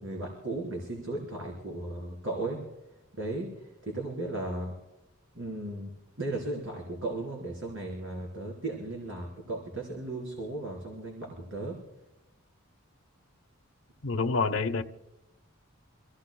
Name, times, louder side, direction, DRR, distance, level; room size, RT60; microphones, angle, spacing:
voice 1, 0.0-2.6 3.2-3.5 3.9-4.7 5.4-5.9 6.2-11.8, right 2 dB, 60° right, -2 dB, 3.8 m, -35 dB
voice 2, 14.0-14.8, left 4 dB, 65° left, 7 dB, 0.9 m, -27 dB
27.0 x 16.0 x 2.3 m, 0.96 s
head